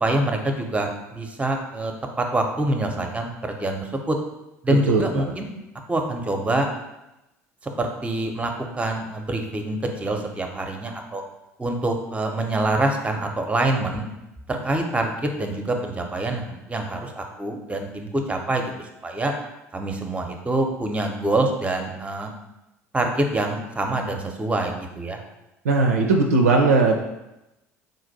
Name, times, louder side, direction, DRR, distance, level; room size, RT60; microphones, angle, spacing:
voice 1, 0.0-1.9 2.2-4.2 4.6-5.5 5.9-6.7 7.6-11.2 11.6-14.0 14.5-19.3 19.7-22.3 22.9-25.2, right 2 dB, 15° right, 4 dB, 0.7 m, -25 dB
voice 2, 4.9-5.3 25.6-27.0, right 3 dB, 80° right, 2 dB, 0.4 m, -18 dB
3.8 x 2.5 x 4.0 m, 0.93 s
hypercardioid pair, 65°, 8 cm